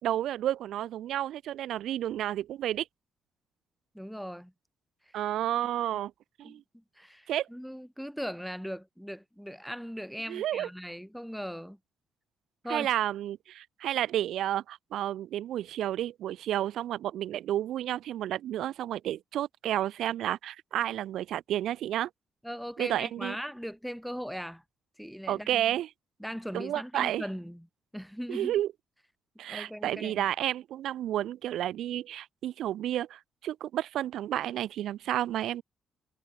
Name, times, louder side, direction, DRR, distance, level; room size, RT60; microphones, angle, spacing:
voice 1, 0.0-2.9 5.1-6.1 6.4-6.6 7.3-7.5 10.3-10.7 12.7-22.1 22.8-23.4 25.3-25.9 26.5-27.2 28.3-28.7 29.4-35.6, right 12 dB, 75° right, 2.1 m, -31 dB
voice 2, 3.9-4.5 6.4-11.8 12.6-12.9 22.4-24.6 25.0-25.7 26.2-27.7 27.9-28.5 29.5-30.3, equal, ahead, 5.3 m, -39 dB
cardioid pair, 90°, 0 cm